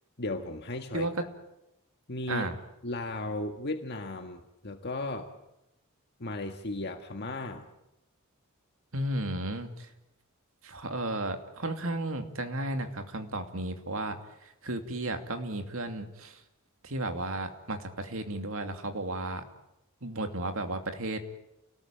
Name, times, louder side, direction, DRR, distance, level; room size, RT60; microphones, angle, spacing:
voice 1, 0.2-1.3 2.1-2.4 2.8-5.3 6.2-7.7, left 2 dB, 50° left, 5 dB, 1.7 m, -35 dB
voice 2, 0.9-1.3 2.3-2.6 8.9-9.9 10.6-16.4 16.8-19.4 20.0-21.2, right 1 dB, 70° right, 6 dB, 2.7 m, -34 dB
29.0 x 19.0 x 9.1 m, 0.90 s
head